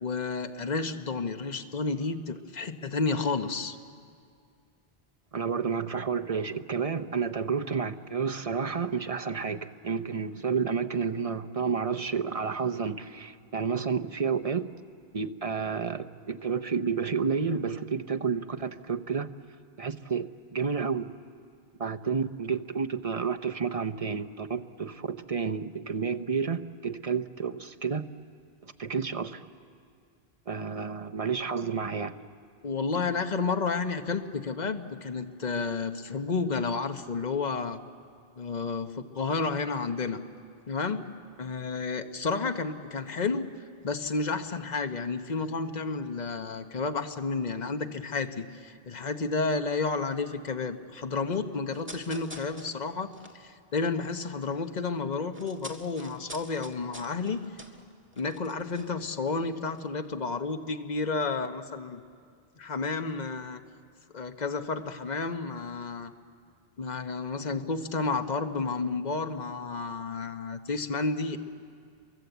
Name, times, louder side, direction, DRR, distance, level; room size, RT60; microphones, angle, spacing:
voice 1, 0.0-3.8 32.6-37.8 38.4-40.2 40.7-41.0 41.4-43.5 43.8-57.5 58.2-62.0 62.6-63.6 64.1-66.1 66.8-71.4, left 4 dB, 45° left, 7 dB, 1.2 m, -31 dB
voice 2, 5.3-14.7 15.1-19.3 19.8-21.1 21.8-28.0 28.8-29.5 30.5-32.2, right 5 dB, 40° right, 7 dB, 0.8 m, -30 dB
sound 1, 51.7-54.6 54.9-59.5 59.7-59.9, right 1 dB, 10° right, 1.7 m, -47 dB
28.5 x 23.0 x 8.1 m, 2.3 s
omnidirectional pair, 1.0 m